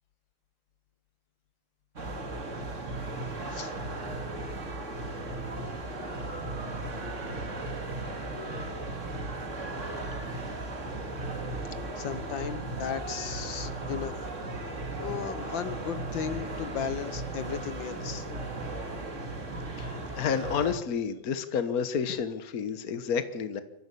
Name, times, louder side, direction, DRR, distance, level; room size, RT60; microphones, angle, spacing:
sound 1, 2.0-20.7, right 2 dB, 40° right, 2.8 m, -36 dB
voice 1, 12.0-14.2 14.9-18.3, left 8 dB, 75° left, 12 dB, 1.9 m, -35 dB
voice 2, 19.8-23.6, left 6 dB, 50° left, 11 dB, 1.7 m, -30 dB
24.0 x 15.0 x 8.4 m, 0.91 s
omnidirectional pair, 2.1 m